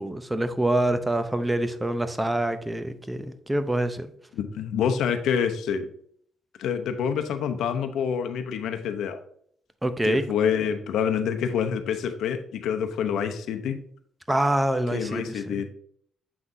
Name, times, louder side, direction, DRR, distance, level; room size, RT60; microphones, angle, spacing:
voice 1, 0.0-4.1 9.8-10.2 14.3-15.5, right 1 dB, 10° right, 0.6 m, -26 dB
voice 2, 4.3-5.9 6.6-9.2 10.0-13.8 14.9-15.7, left 7 dB, 80° left, 0.8 m, -27 dB
7.8 x 5.9 x 2.7 m
cardioid pair, 90°, 0 cm